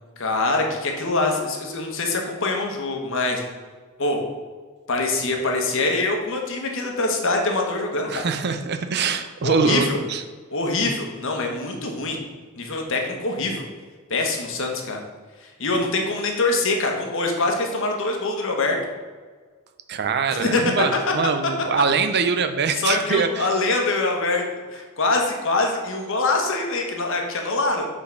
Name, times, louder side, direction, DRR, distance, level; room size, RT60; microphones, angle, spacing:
voice 1, 0.2-3.4 4.0-4.2 4.9-8.2 9.4-10.0 10.5-12.2 12.6-13.6 14.1-15.0 15.6-18.8 20.3-20.6 21.7-21.8 22.8-24.4 24.7-27.9, left 2 dB, 65° left, 2 dB, 1.2 m, -24 dB
voice 2, 8.1-10.2 19.9-23.5, right 5 dB, 50° right, 8 dB, 0.5 m, -23 dB
6.1 x 4.0 x 5.8 m, 1.5 s
head